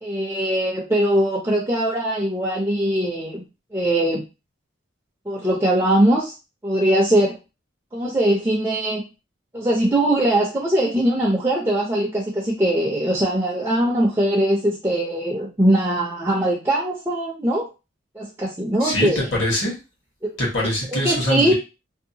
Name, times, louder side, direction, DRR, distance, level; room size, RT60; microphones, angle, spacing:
voice 1, 0.0-3.4 3.7-4.2 5.3-6.3 6.6-7.4 7.9-9.0 9.5-17.7 18.2-19.3 20.2-20.3 21.0-21.5, right 1 dB, 15° right, -3 dB, 0.5 m, -21 dB
voice 2, 18.8-19.7 20.4-21.5, left 1 dB, 65° left, -2 dB, 1.2 m, -23 dB
2.7 x 2.1 x 2.7 m, 0.27 s
head